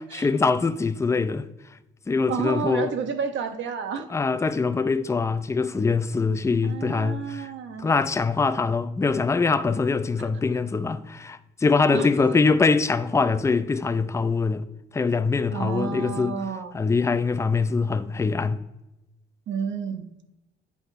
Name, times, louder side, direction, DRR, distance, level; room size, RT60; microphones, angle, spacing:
voice 1, 0.2-1.5 2.1-2.9 4.1-7.5 7.8-14.6 14.9-16.4 16.7-18.6, left 4 dB, 15° left, 0.4 m, -23 dB
voice 2, 2.3-4.1 6.6-7.9 11.9-12.3 15.5-16.7 19.5-20.0, right 6 dB, 70° right, 0.8 m, -30 dB
8.4 x 4.4 x 4.1 m
cardioid pair, 90°, 20 cm